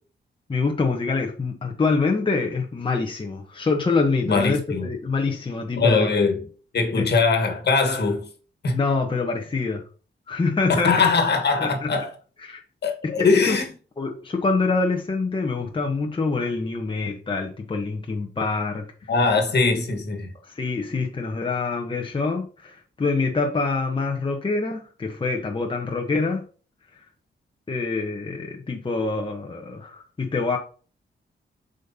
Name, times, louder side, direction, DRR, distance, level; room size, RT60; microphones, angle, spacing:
voice 1, 0.5-6.1 8.7-9.8 10.3-10.9 11.6-11.9 12.4-12.6 13.0-13.6 14.0-18.8 20.5-26.4 27.7-30.6, left 4 dB, 25° left, 1.0 m, -25 dB
voice 2, 4.2-4.9 5.8-6.5 6.7-8.3 8.6-8.8 10.7-12.1 12.8-13.7 19.1-20.3, left 4 dB, 60° left, 1.7 m, -21 dB
7.6 x 5.2 x 2.8 m
wide cardioid pair, 135°, 19 cm